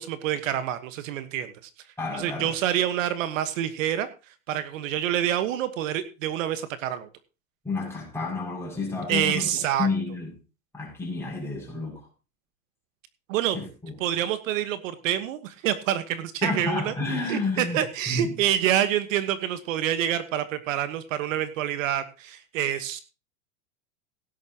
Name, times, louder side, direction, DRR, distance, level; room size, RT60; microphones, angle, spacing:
voice 1, 0.0-1.7 2.1-4.1 4.5-7.1 9.1-9.9 13.3-13.6 14.0-16.9 17.3-23.0, right 11 dB, 70° right, 1.4 m, -27 dB
voice 2, 2.0-2.5 7.6-10.3 10.7-12.1 13.5-13.9 16.4-17.8 18.1-18.4, left 3 dB, 5° left, 6.8 m, -30 dB
17.0 x 10.5 x 2.9 m
supercardioid pair, 150°, 41 cm